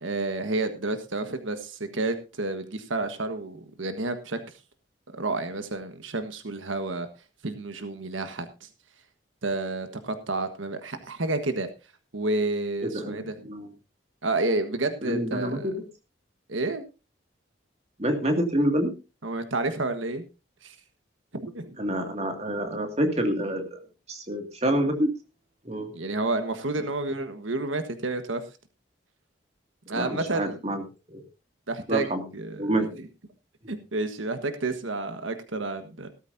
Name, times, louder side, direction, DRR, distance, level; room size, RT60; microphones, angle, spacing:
voice 1, 0.0-4.4 5.1-7.1 7.4-8.7 9.4-11.7 12.1-13.3 14.2-15.7 16.5-16.8 19.2-20.2 20.6-20.7 21.3-21.8 25.9-28.4 29.9-30.6 31.7-33.1 33.7-36.1, right 2 dB, 90° right, 8 dB, 1.5 m, -30 dB
voice 2, 12.8-13.7 15.0-15.7 18.0-18.9 21.8-23.8 24.1-25.1 25.7-25.9 29.9-30.8 31.1-31.2 31.9-32.2 32.6-32.9, right 1 dB, 35° right, 4 dB, 2.3 m, -27 dB
16.5 x 13.5 x 2.7 m, 0.29 s
head